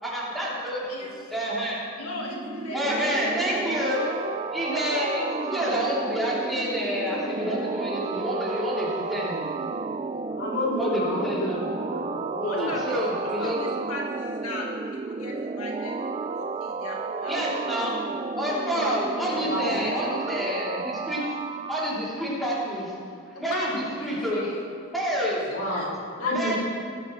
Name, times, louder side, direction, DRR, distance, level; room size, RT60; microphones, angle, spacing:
voice 1, 0.0-0.8 1.3-1.8 2.7-4.0 4.5-9.4 10.7-11.6 12.6-13.6 17.3-18.0 18.4-21.2 21.7-22.9 23.4-24.4 24.9-25.4 26.3-26.5, equal, ahead, -9 dB, 3.5 m, -28 dB
voice 2, 2.0-4.1 4.5-4.6 12.4-17.4 18.1-18.2 19.5-19.9 23.4-24.6 25.2-25.9 26.2-26.5, left 2 dB, 85° left, -2 dB, 1.9 m, -38 dB
sound 1, 2.0-21.9, right 4 dB, 30° right, 0.4 m, -32 dB
voice 3, 10.3-11.5 11.9-12.7 19.4-19.8 25.5-26.5, left 1 dB, 60° left, -4 dB, 3.2 m, -29 dB
19.0 x 10.0 x 3.4 m, 2.4 s
head